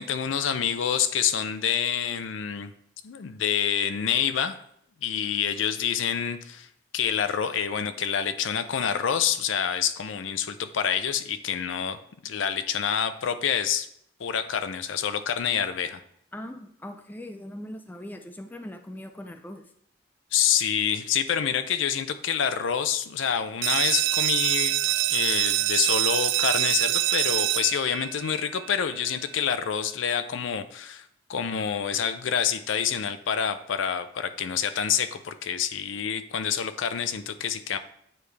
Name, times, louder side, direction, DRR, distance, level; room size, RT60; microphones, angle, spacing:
voice 1, 0.0-2.7 3.0-4.6 5.0-6.7 6.9-13.9 14.2-16.0 20.3-24.7 25.1-31.0 31.3-37.8, left 8 dB, 85° left, 11 dB, 0.4 m, -27 dB
voice 2, 16.3-19.6, left 1 dB, 10° left, 6 dB, 0.4 m, -40 dB
sound 1, 23.6-29.0, right 16 dB, 70° right, 0.3 m, -25 dB
9.0 x 3.2 x 3.3 m, 0.70 s
head